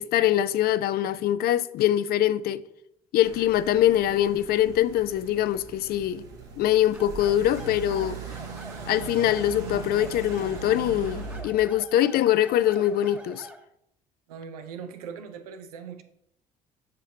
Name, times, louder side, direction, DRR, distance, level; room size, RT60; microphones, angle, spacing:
voice 1, 0.0-2.6 3.1-6.2 6.6-8.2 8.9-13.5, left 12 dB, 60° left, 0.4 m, -23 dB
sound 1, 3.2-11.4, right 4 dB, 70° right, 1.6 m, -39 dB
sound 2, 6.9-13.7, right 1 dB, 5° right, 0.9 m, -46 dB
voice 2, 14.3-16.0, right 6 dB, 90° right, 0.6 m, -40 dB
7.5 x 5.8 x 2.8 m
hypercardioid pair, 55°, 19 cm